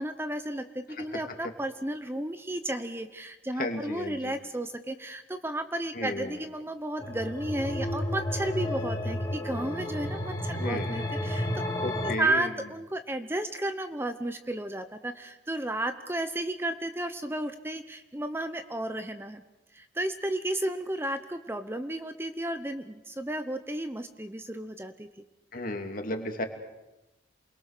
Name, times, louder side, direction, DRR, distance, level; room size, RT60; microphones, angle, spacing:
voice 1, 0.0-19.4 19.7-25.2, right 1 dB, 15° right, 9 dB, 0.9 m, -33 dB
voice 2, 1.0-1.4 3.5-4.3 5.9-6.4 10.5-10.9 11.8-12.5 25.5-26.4, left 2 dB, 50° left, 4 dB, 2.8 m, -34 dB
sound 1, 7.0-12.1, left 1 dB, 20° left, 2.6 m, -32 dB
28.0 x 22.0 x 6.7 m, 1.0 s
head